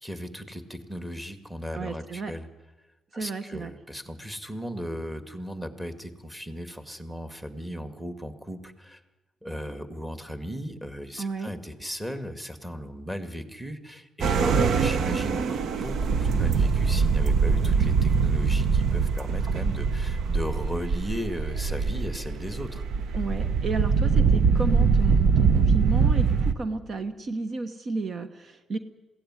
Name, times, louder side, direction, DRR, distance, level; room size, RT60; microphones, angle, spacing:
voice 1, 0.0-2.5 3.1-9.0 9.4-22.8, equal, 5° right, 8 dB, 2.2 m, -36 dB
voice 2, 1.7-2.3 3.1-3.7 11.2-11.5 23.2-28.8, right 3 dB, 50° right, 9 dB, 1.3 m, -32 dB
sound 1, 14.2-26.5, right 5 dB, 65° right, 1.0 m, -23 dB
21.5 x 16.5 x 9.8 m, 1.1 s
cardioid pair, 90°, 0 cm